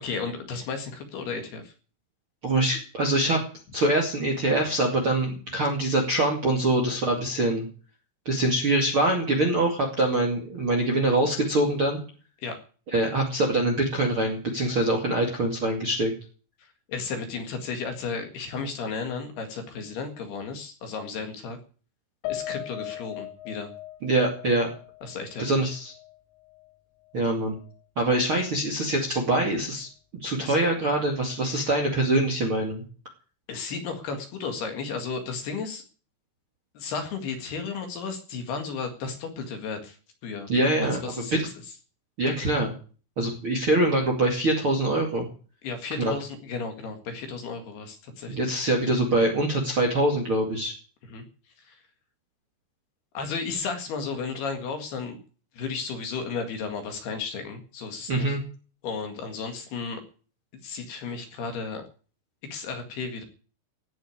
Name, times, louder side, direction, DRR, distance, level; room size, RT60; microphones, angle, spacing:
voice 1, 0.0-1.7 12.4-12.6 16.6-21.6 22.3-23.7 25.0-25.7 30.4-30.6 33.5-35.8 36.8-40.0 40.2-40.5 41.0-41.4 45.6-48.4 51.1-51.2 51.6-51.8 53.1-55.2 55.6-58.4 58.8-60.0 60.6-61.8 62.5-63.2, left 5 dB, 60° left, 5 dB, 3.5 m, -34 dB
voice 2, 2.4-3.4 3.7-7.7 8.3-12.0 12.9-16.1 24.0-24.7 25.4-25.9 27.1-27.6 28.0-29.9 30.2-32.8 40.5-41.5 42.2-42.7 43.2-45.3 46.0-46.1 48.3-50.7 58.1-58.4, right 1 dB, 40° right, 3 dB, 2.0 m, -24 dB
Piano, 22.2-26.7 27.1-27.2 27.6-27.8, left 13 dB, 80° left, 3.4 m, -39 dB
17.0 x 6.9 x 9.6 m, 0.39 s
omnidirectional pair, 5.8 m